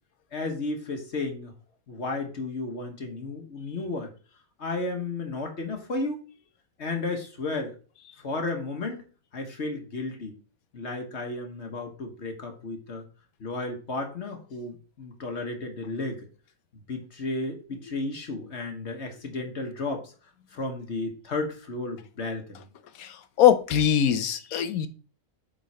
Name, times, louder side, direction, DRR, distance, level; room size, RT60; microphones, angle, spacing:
voice 1, 0.3-1.5 1.9-4.1 4.6-6.2 6.8-7.7 8.2-9.0 9.3-10.4 10.7-13.0 13.4-16.3 16.9-20.1 20.5-22.7, left 3 dB, 55° left, 4 dB, 1.3 m, -33 dB
voice 2, 23.0-24.9, left 9 dB, 90° left, 11 dB, 1.2 m, -22 dB
8.2 x 3.8 x 4.1 m, 0.38 s
omnidirectional pair, 1.4 m